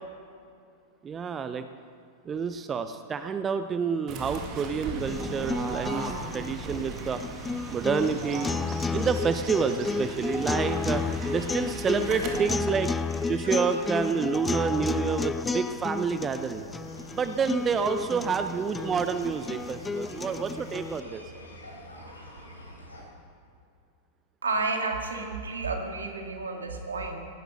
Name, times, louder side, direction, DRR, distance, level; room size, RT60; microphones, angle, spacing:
voice 1, 1.0-1.7 2.3-7.2 7.7-8.5 8.9-12.9 13.3-16.8 17.1-21.2, right 6 dB, 20° right, 10 dB, 0.6 m, -28 dB
Fowl / Bird, 4.1-12.4, right 3 dB, 35° right, 2.2 m, -37 dB
sound 1, 5.0-21.0, left 4 dB, 10° left, 0.3 m, -32 dB
sound 2, 10.9-23.0, equal, 80° left, 3.6 m, -46 dB
voice 2, 24.4-27.2, right 3 dB, 70° right, 3 dB, 2.2 m, -31 dB
18.0 x 11.5 x 6.5 m, 2.4 s
figure-of-eight pair, 90°, 0 cm